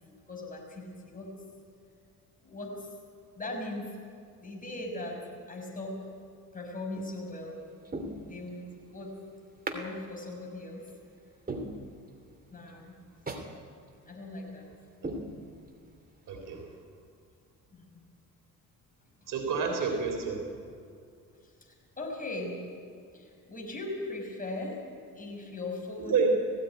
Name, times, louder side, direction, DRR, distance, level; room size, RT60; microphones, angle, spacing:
voice 1, 0.0-1.3 2.4-2.9 3.4-4.0 4.4-5.2 5.5-6.0 6.5-7.6 8.2-8.6 8.9-9.2 9.7-10.9 12.5-13.0 13.3-13.4 14.1-14.7 17.7-18.0 21.4-22.6 23.1-24.8 25.1-26.3, left 2 dB, 25° left, 0 dB, 5.7 m, -39 dB
sound 1, 6.9-7.3 7.8-8.8 9.7-9.9 10.3-10.4 10.9-11.0 11.5-12.4 12.7-12.8 13.3-13.5 13.9-14.0 14.5-14.6 15.0-15.9 16.3-16.4, right 2 dB, 25° right, 2.7 m, -39 dB
voice 2, 16.3-16.6 19.3-20.4 26.1-26.3, right 5 dB, 65° right, 2 dB, 3.6 m, -28 dB
18.5 x 16.0 x 9.4 m, 2.4 s
cardioid pair, 80°, 35 cm